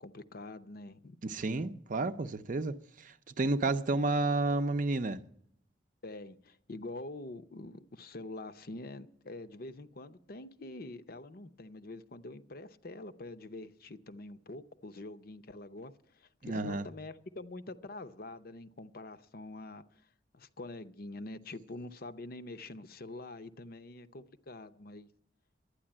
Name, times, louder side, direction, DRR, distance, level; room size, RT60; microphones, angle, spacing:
voice 1, 0.0-1.2 6.0-19.8 20.3-25.1, left 2 dB, 55° left, 0.7 m, -45 dB
voice 2, 1.2-2.8 3.0-5.2 16.4-16.8, right 2 dB, 45° right, 0.6 m, -31 dB
11.5 x 9.6 x 8.7 m
head